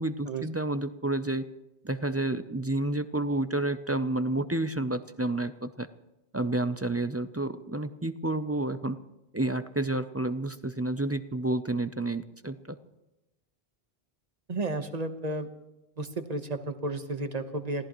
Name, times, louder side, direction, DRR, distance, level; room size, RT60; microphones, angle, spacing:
voice 1, 0.0-1.4 1.8-5.9 6.3-9.0 9.3-12.8, right 2 dB, 20° right, 11 dB, 0.4 m, -30 dB
voice 2, 14.5-15.5 16.0-17.9, right 2 dB, 40° right, 8 dB, 1.3 m, -32 dB
27.0 x 17.0 x 3.1 m, 0.99 s
omnidirectional pair, 1.0 m